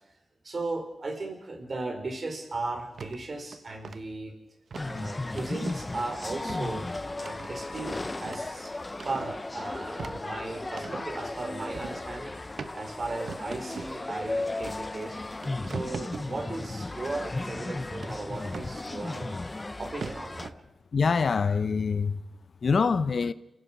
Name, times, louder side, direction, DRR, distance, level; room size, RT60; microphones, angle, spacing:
voice 1, 0.4-4.4 4.8-6.9 7.2-8.8 9.0-15.2 15.7-19.4 19.8-20.5, right 2 dB, 50° right, 4.6 m, -36 dB
sound 1, 3.0-3.2 3.5-4.0 4.7-4.9 5.4-5.8 6.2-6.7 7.2-8.5 8.9-9.4 9.8-11.1 11.7-12.0 12.6-12.7 13.3-14.0 14.7-14.8 15.2-16.3 18.0-18.8 19.7-19.8 20.0-20.5, right 5 dB, 75° right, 0.9 m, -41 dB
sound 2, 4.7-20.5, left 2 dB, 30° left, 0.7 m, -35 dB
voice 2, 20.9-22.1 22.6-23.3, left 5 dB, 65° left, 0.9 m, -24 dB
28.5 x 15.5 x 6.2 m
cardioid pair, 70°, 0 cm